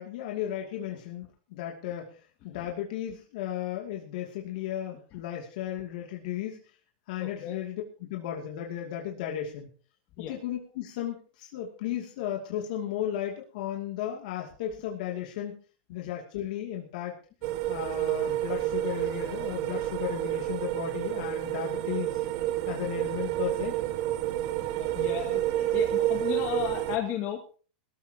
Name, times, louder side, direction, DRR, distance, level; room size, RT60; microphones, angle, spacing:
voice 1, 0.0-6.6 7.1-9.7 10.3-15.5 15.9-17.1 17.7-22.3 22.7-23.7, left 11 dB, 60° left, 0 dB, 2.7 m, -35 dB
voice 2, 7.2-7.6 10.2-10.3 24.7-27.6, left 11 dB, 40° left, 3 dB, 2.1 m, -34 dB
sound 1, 17.4-27.0, right 14 dB, 50° right, 1.7 m, -29 dB
21.5 x 14.0 x 3.0 m, 0.40 s
supercardioid pair, 150°, 5 cm